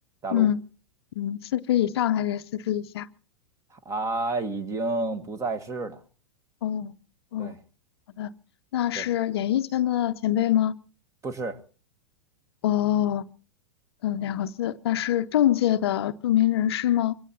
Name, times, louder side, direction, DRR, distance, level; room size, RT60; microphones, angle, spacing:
voice 1, 1.2-3.1 6.6-6.9 7.3-7.5 8.2-8.3 8.7-10.7 12.6-13.2 14.0-17.1, left 12 dB, 55° left, 0.7 m, -24 dB
voice 2, 3.7-6.0 7.4-7.6 8.9-9.1 11.2-11.6, right 3 dB, 20° right, 1.5 m, -30 dB
24.5 x 17.0 x 2.9 m
figure-of-eight pair, 95°, 16 cm